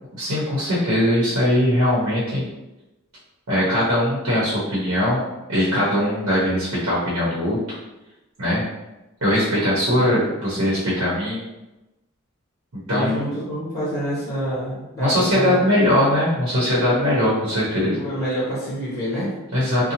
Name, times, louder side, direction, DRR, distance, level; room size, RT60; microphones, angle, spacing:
voice 1, 0.2-2.5 3.5-7.6 8.4-8.6 9.2-11.4 12.7-13.2 15.0-18.0 19.5-19.9, left 1 dB, 90° right, -8 dB, 0.9 m, -20 dB
voice 2, 12.9-15.6 17.9-19.3, right 1 dB, 15° left, -9 dB, 1.0 m, -27 dB
2.7 x 2.1 x 2.9 m, 1.0 s
head